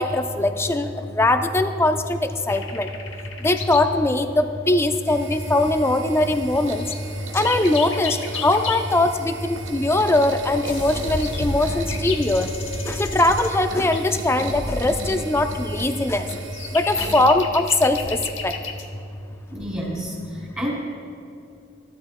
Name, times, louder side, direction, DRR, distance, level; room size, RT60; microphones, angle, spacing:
voice 1, 0.0-2.9 3.4-6.9 7.3-12.5 12.8-16.3 16.7-18.5, left 2 dB, 15° left, 7 dB, 0.5 m, -21 dB
sound 1, 2.5-4.0 4.2-4.3 5.0-5.1 5.3-5.7 6.1-6.2 6.5-8.9 9.6-18.9 19.6-19.9, left 3 dB, 70° left, 0.9 m, -33 dB
sound 2, 5.1-17.3, right 3 dB, 75° right, 1.2 m, -36 dB
sound 3, 10.7-14.2, left 1 dB, 85° left, 2.2 m, -41 dB
voice 2, 19.5-20.7, equal, 10° right, -6 dB, 2.4 m, -29 dB
15.5 x 12.5 x 2.2 m, 2.6 s
head